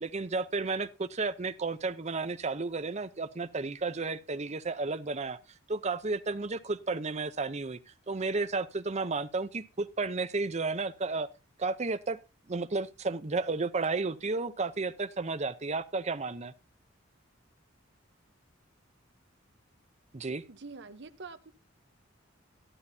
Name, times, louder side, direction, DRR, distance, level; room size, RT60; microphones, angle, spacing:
voice 1, 0.0-5.4 5.7-7.8 8.1-11.3 11.6-12.2 12.5-16.5 20.1-20.4, right 3 dB, 35° right, 0.7 m, -32 dB
voice 2, 20.5-21.5, right 4 dB, 60° right, 0.9 m, -45 dB
13.0 x 12.0 x 2.7 m
head